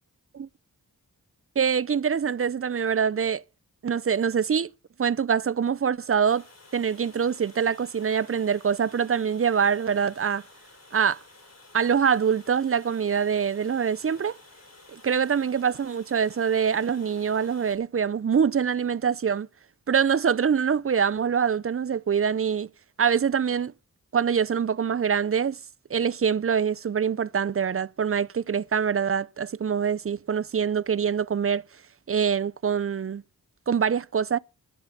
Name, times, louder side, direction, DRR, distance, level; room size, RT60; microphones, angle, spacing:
voice 1, 1.6-3.4 3.8-4.7 5.0-6.4 6.7-10.4 10.9-11.2 11.7-14.4 14.9-19.5 19.9-22.7 23.0-23.7 24.1-25.6 25.9-31.6 32.1-33.2 33.7-34.4, right 7 dB, 35° right, 0.5 m, -24 dB
Water, 6.2-17.8, left 2 dB, 40° left, 4.2 m, -52 dB
10.0 x 7.7 x 7.1 m
cardioid pair, 50°, 38 cm